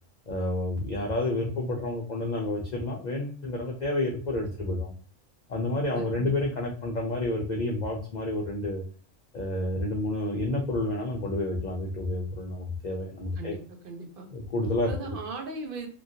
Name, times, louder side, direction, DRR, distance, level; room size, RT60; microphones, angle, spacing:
voice 1, 0.3-4.9 5.5-8.8 9.3-13.5 14.3-14.9, left 2 dB, 55° left, -1 dB, 0.5 m, -29 dB
voice 2, 5.9-6.3 13.4-14.3 14.8-15.9, right 3 dB, 55° right, 4 dB, 0.7 m, -38 dB
3.0 x 2.4 x 2.7 m, 0.43 s
omnidirectional pair, 1.3 m